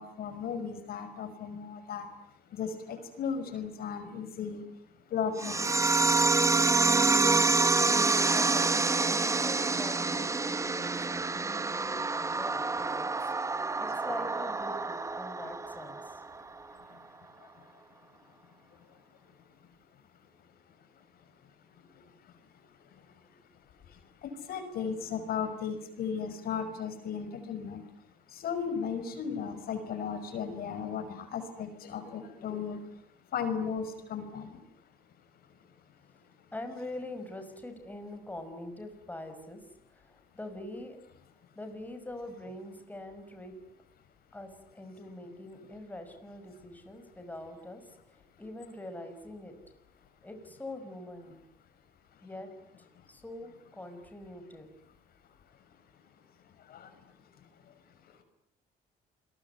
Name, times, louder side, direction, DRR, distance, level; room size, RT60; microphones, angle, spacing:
voice 1, 0.0-2.1 2.5-4.6 5.1-5.7 24.5-27.8 28.3-32.8 33.3-34.6 56.7-56.9, left 6 dB, 65° left, 10 dB, 5.8 m, -35 dB
sound 1, 5.4-16.4, right 3 dB, 20° right, 1.2 m, -27 dB
voice 2, 7.4-16.2 21.8-22.1 23.0-23.2 36.5-41.0 41.5-43.6 44.3-49.6 50.2-51.4 52.2-54.7, left 1 dB, 10° left, 6 dB, 5.9 m, -44 dB
28.0 x 22.0 x 9.5 m, 0.75 s
cardioid pair, 110°, 17 cm